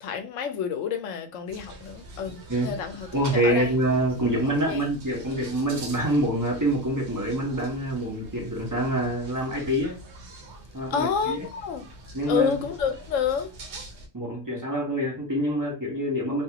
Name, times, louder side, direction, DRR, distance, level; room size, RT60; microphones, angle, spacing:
voice 1, 0.0-3.7 4.7-4.9 10.9-11.9 12.3-13.5, left 7 dB, 75° left, 0.9 m, -29 dB
sound 1, 1.5-14.1, right 2 dB, 65° right, 0.9 m, -44 dB
voice 2, 3.1-10.0 10.7-11.4 12.1-12.5 14.1-16.4, right 1 dB, 25° right, 0.5 m, -26 dB
2.6 x 2.3 x 2.7 m
omnidirectional pair, 1.4 m